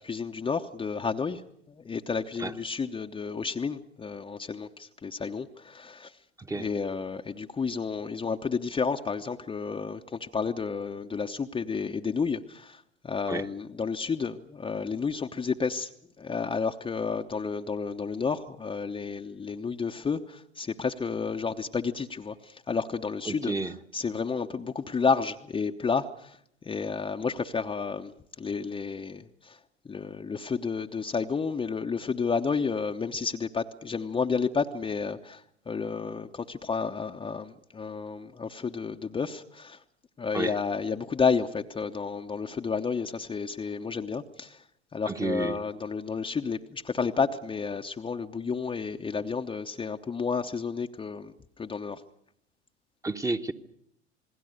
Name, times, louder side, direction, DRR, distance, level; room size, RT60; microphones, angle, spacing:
voice 1, 0.0-1.4 1.7-6.2 6.5-15.9 16.2-23.5 23.9-26.4 26.6-28.1 28.4-29.6 29.8-39.8 40.2-44.6 44.9-52.0, left 5 dB, 15° left, 4 dB, 0.9 m, -31 dB
voice 2, 23.3-23.7 40.3-40.5 45.1-45.6 53.0-53.5, right 2 dB, 10° right, 8 dB, 1.2 m, -30 dB
28.0 x 20.5 x 6.6 m, 0.70 s
figure-of-eight pair, 80°, 34 cm